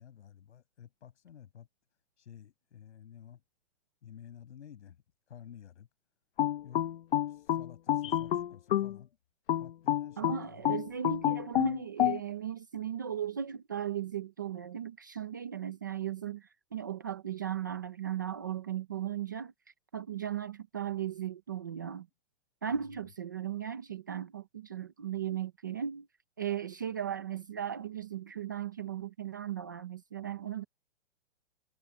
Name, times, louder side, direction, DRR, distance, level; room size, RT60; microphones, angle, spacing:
voice 1, 0.0-1.7 2.2-3.4 4.0-5.0 5.3-5.9 6.6-6.8 7.3-9.2 9.6-10.7 22.9-23.0 30.4-30.5, left 9 dB, 80° left, 5.9 m, -52 dB
sound 1, 6.4-9.0 9.5-12.2, left 12 dB, 50° left, 1.0 m, -29 dB
voice 2, 10.2-19.5 19.9-22.1 22.6-26.1 26.4-30.6, right 9 dB, 20° right, 0.4 m, -36 dB
hypercardioid pair, 180°, 34 cm